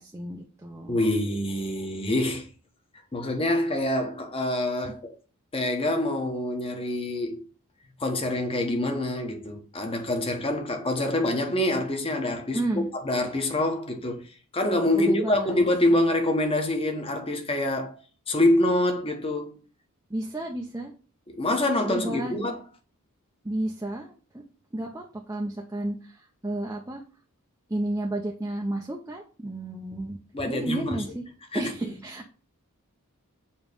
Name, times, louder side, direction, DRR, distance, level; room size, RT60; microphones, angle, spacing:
voice 1, 0.0-1.0 4.8-4.9 12.5-12.9 14.9-15.7 20.1-21.0 21.9-22.4 23.4-24.4 24.7-27.0 27.7-30.2 30.4-31.2 31.5-32.3, right 1 dB, 15° right, 0.7 m, -32 dB
voice 2, 0.9-2.5 3.1-5.1 5.5-7.5 8.0-12.6 13.0-14.3 14.5-18.0 18.3-19.5 21.3-22.6 30.3-31.0 31.5-31.7, left 1 dB, 25° left, 1.2 m, -26 dB
7.1 x 3.1 x 5.2 m
head